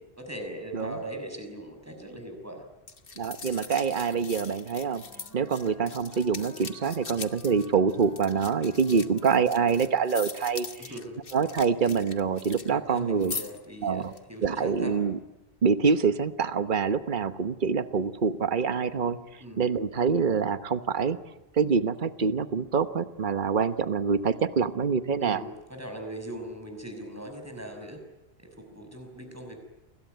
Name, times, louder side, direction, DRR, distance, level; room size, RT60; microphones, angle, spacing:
voice 1, 0.2-2.6 8.9-9.1 10.8-11.2 12.7-14.0 14.3-15.0 19.4-19.7 25.2-28.0 28.4-29.6, right 1 dB, 15° right, 4 dB, 6.2 m, -40 dB
sound 1, 2.9-12.7 13.0-13.7 14.0-14.2, left 5 dB, 60° left, 1.6 m, -41 dB
voice 2, 3.2-5.0 5.3-10.9 11.3-13.4 13.8-14.1 14.4-15.2 15.6-19.2 19.6-21.2 21.5-25.4, right 5 dB, 50° right, 10 dB, 1.3 m, -26 dB
Wind instrument woodwind instrument, 4.7-10.2, left 2 dB, 15° left, 4.1 m, -51 dB
29.5 x 21.0 x 9.3 m, 0.98 s
omnidirectional pair, 1.1 m